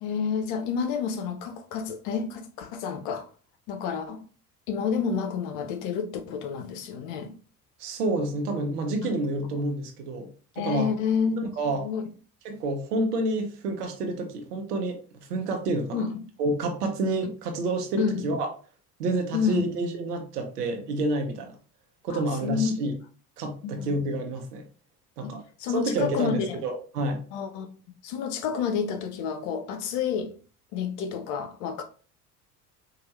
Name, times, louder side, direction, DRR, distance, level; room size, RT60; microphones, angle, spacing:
voice 1, 0.0-3.3 3.7-4.2 4.7-7.3 10.6-11.4 11.8-12.1 15.9-16.2 18.0-18.2 19.3-19.7 22.1-22.7 23.6-24.0 25.2-25.3 25.6-26.6 27.3-27.7 28.0-30.3 30.7-31.8, left 6 dB, 70° left, 0.8 m, -29 dB
voice 2, 7.8-10.3 10.6-10.9 11.4-11.8 12.4-15.0 15.3-16.0 16.4-18.5 19.0-21.5 22.0-22.9 23.4-24.6 25.2-25.4 25.7-27.2, right 2 dB, 80° right, 1.0 m, -29 dB
4.7 x 2.5 x 3.1 m
hypercardioid pair, 60°, 46 cm